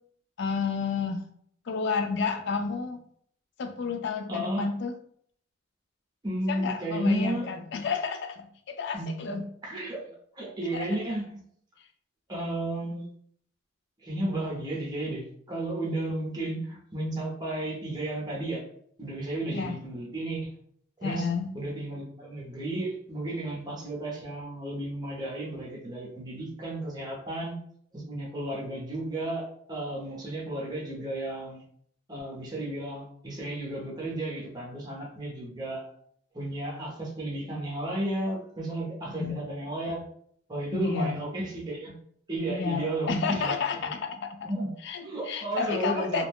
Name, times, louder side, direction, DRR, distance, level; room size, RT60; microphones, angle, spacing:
voice 1, 0.4-1.2 1.7-3.0 3.6-4.9 6.5-9.5 10.7-10.9 19.5-19.8 21.0-21.5 39.2-39.4 40.7-41.2 42.5-44.5 44.8-45.0 45.3-46.2, left 5 dB, 60° left, 7 dB, 0.4 m, -30 dB
voice 2, 4.3-4.7 6.2-7.5 8.9-11.4 12.3-13.0 14.0-18.6 19.0-20.5 21.0-21.3 21.5-27.6 27.9-31.6 32.1-35.9 36.3-40.0 40.5-41.9 42.3-43.9 44.4-46.3, right 1 dB, 20° right, -3 dB, 0.7 m, -33 dB
2.4 x 2.1 x 3.4 m, 0.64 s
head